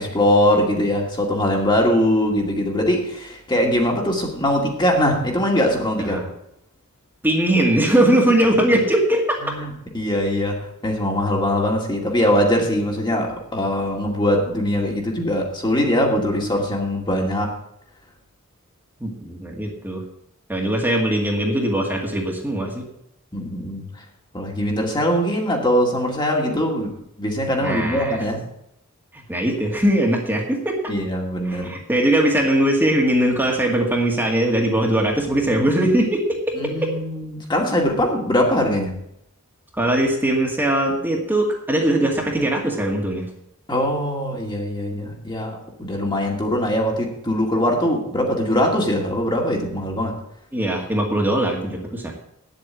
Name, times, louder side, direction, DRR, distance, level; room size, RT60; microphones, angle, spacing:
voice 1, 0.0-6.2 9.4-17.5 23.3-23.9 24.3-28.4 30.9-31.7 36.5-39.0 43.7-50.2, equal, 20° left, 0 dB, 2.3 m, -22 dB
voice 2, 7.2-9.4 19.0-20.0 20.5-22.9 27.6-28.2 29.1-30.8 31.5-36.9 39.8-43.2 50.5-52.1, right 1 dB, 10° right, -1 dB, 2.1 m, -20 dB
9.7 x 8.1 x 8.2 m, 0.77 s
head